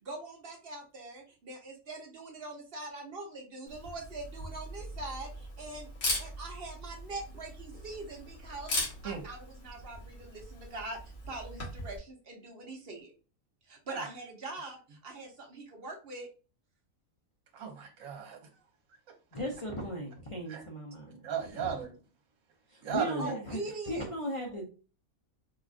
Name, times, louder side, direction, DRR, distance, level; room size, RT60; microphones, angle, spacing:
voice 1, 0.0-5.9 6.2-8.7 9.0-11.0 11.3-13.1 13.7-16.3 23.2-24.1, right 2 dB, 50° right, 1 dB, 0.9 m, -42 dB
Camera, 3.7-12.0, left 1 dB, 65° left, 1.7 m, -39 dB
voice 2, 17.5-18.4 20.5-20.6 21.2-21.9 22.8-23.3, right 7 dB, 70° right, 2 dB, 1.3 m, -35 dB
voice 3, 19.3-21.2 21.5-21.7 22.7-24.7, equal, 40° left, 0 dB, 0.4 m, -37 dB
4.7 x 2.4 x 2.4 m, 0.35 s
omnidirectional pair, 1.5 m